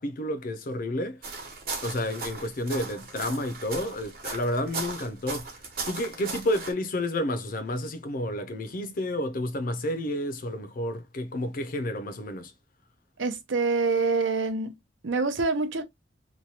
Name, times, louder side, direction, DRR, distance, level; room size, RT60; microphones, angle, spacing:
voice 1, 0.0-1.4 1.8-5.6 5.9-12.5, left 1 dB, 45° left, 0.5 m, -30 dB
sound 1, 1.2-6.7, right 4 dB, 50° right, 1.0 m, -37 dB
voice 2, 13.2-14.7 15.0-15.8, right 3 dB, 80° right, 0.7 m, -26 dB
3.0 x 2.2 x 2.7 m
head